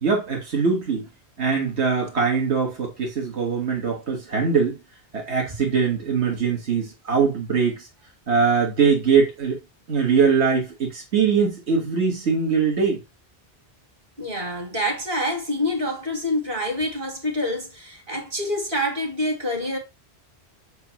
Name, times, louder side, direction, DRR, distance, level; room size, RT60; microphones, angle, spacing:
voice 1, 0.0-1.1 1.4-4.8 5.1-7.9 8.3-9.6 9.9-13.0, right 5 dB, 75° right, 1.9 m, -22 dB
voice 2, 14.2-19.8, left 1 dB, 50° right, 2.4 m, -26 dB
8.1 x 5.0 x 3.0 m
omnidirectional pair, 1.1 m